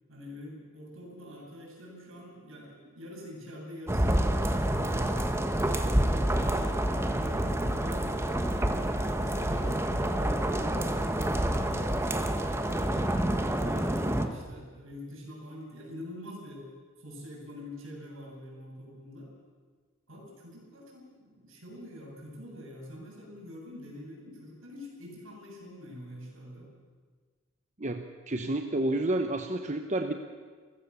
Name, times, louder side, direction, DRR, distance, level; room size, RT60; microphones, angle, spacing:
voice 1, 0.1-8.3 8.8-16.7 17.0-19.3 20.1-26.7, left 1 dB, 70° right, -1 dB, 7.4 m, -45 dB
sound 1, 3.9-14.3, right 1 dB, 15° right, 1.3 m, -28 dB
voice 2, 27.8-30.1, right 1 dB, 35° right, 5 dB, 1.0 m, -30 dB
28.5 x 15.5 x 7.0 m, 1.6 s
head